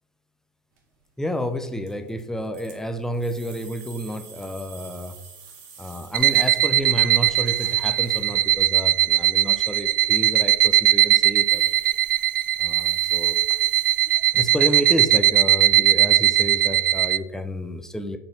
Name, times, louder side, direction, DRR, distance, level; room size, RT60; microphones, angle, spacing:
sound 1, 0.7-1.0 1.7-6.8 7.1-9.1 9.6-9.7 10.2-10.6 10.8-10.9 11.2-14.6, right 5 dB, 65° right, 1.7 m, -48 dB
voice 1, 1.2-5.2 5.8-11.7 12.6-13.4 14.1-18.2, equal, 5° left, 7 dB, 0.6 m, -30 dB
sound 2, 6.1-17.2, right 13 dB, 80° right, 0.4 m, -19 dB
4.8 x 4.2 x 5.4 m, 0.92 s
hypercardioid pair, 100°, 11 cm